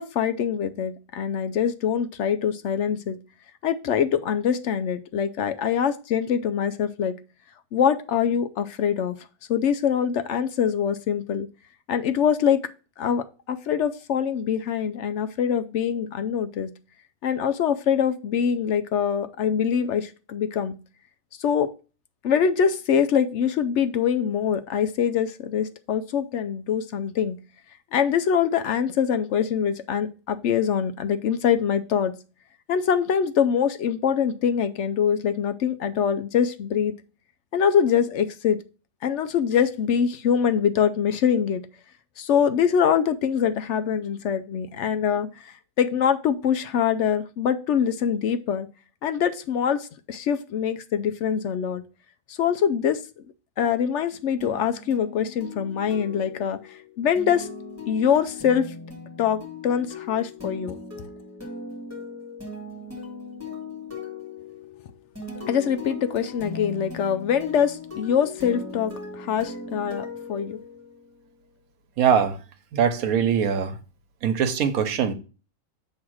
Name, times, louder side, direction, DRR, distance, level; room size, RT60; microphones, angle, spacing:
voice 1, 0.0-3.2 3.6-7.2 7.7-11.5 11.9-12.6 13.0-16.7 17.2-20.8 21.4-21.7 22.2-27.4 27.9-32.1 32.7-36.9 37.5-38.6 39.0-41.6 42.2-48.7 49.0-51.8 52.3-53.0 53.6-57.5 57.9-58.7 59.2-60.8 65.5-70.6, left 8 dB, 65° left, 0.8 m, -24 dB
sound 1, 54.4-71.1, left 3 dB, 10° right, 2.0 m, -39 dB
voice 2, 72.0-72.4 72.7-73.8 74.2-75.1, right 7 dB, 90° right, 1.3 m, -22 dB
7.3 x 3.2 x 6.2 m
omnidirectional pair, 1.4 m